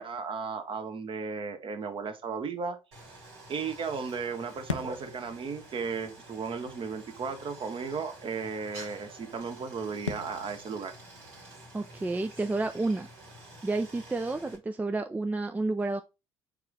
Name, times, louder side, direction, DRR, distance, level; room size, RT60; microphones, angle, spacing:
voice 1, 0.0-2.8 3.5-10.9, right 5 dB, 35° right, 0.9 m, -35 dB
Stream, 2.9-14.6, right 2 dB, 70° right, 1.8 m, -50 dB
sound 1, 3.9-13.2, left 5 dB, 85° left, 0.5 m, -45 dB
voice 2, 11.7-13.1 13.6-16.0, right 2 dB, 10° right, 0.4 m, -30 dB
4.6 x 3.7 x 3.1 m
figure-of-eight pair, 50°, 15 cm